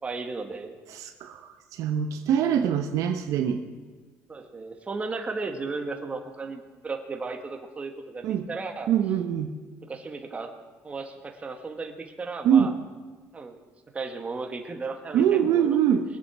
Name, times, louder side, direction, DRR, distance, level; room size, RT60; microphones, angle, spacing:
voice 1, 0.0-0.8 4.3-8.9 9.9-10.5 10.8-12.7 13.3-13.6 13.9-15.7, right 3 dB, 20° right, 4 dB, 1.6 m, -35 dB
voice 2, 0.9-3.6 8.2-8.5 8.9-9.5 12.4-12.7 15.1-16.0, right 8 dB, 70° right, 6 dB, 1.0 m, -23 dB
22.0 x 8.2 x 6.2 m, 1.4 s
cardioid pair, 120°, 6 cm